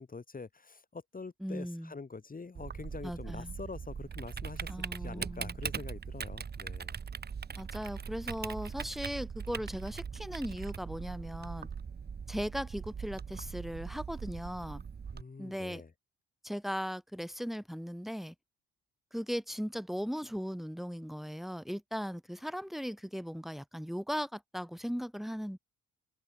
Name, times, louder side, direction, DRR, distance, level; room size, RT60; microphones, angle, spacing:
voice 1, 0.0-7.0 15.1-15.9, left 4 dB, 30° left, 5.0 m, -45 dB
voice 2, 1.4-1.9 3.0-3.5 4.7-5.6 7.6-11.7 12.3-14.8 15.4-15.8 16.4-18.3 19.1-25.6, equal, ahead, 5.0 m, -38 dB
Typing, 2.5-15.2, right 6 dB, 35° right, 1.2 m, -41 dB
cardioid pair, 90°, 30 cm